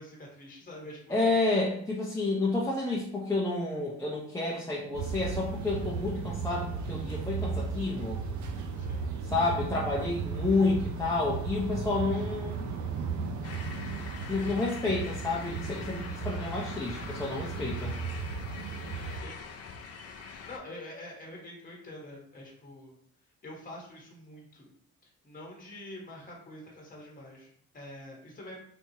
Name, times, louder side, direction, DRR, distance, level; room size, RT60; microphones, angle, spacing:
voice 1, 0.0-1.2 8.8-9.1 19.1-19.4 20.4-22.9 23.4-24.7 25.2-28.6, left 1 dB, 30° left, -1 dB, 1.1 m, -46 dB
voice 2, 1.1-8.2 9.3-12.6 14.3-18.0, left 3 dB, 10° left, -6 dB, 0.6 m, -30 dB
sound 1, 4.9-19.2, right 5 dB, 70° right, 0.6 m, -35 dB
sound 2, 13.4-20.6, left 5 dB, 55° left, 0.5 m, -44 dB
3.5 x 2.8 x 2.8 m, 0.62 s
cardioid pair, 90°, 30 cm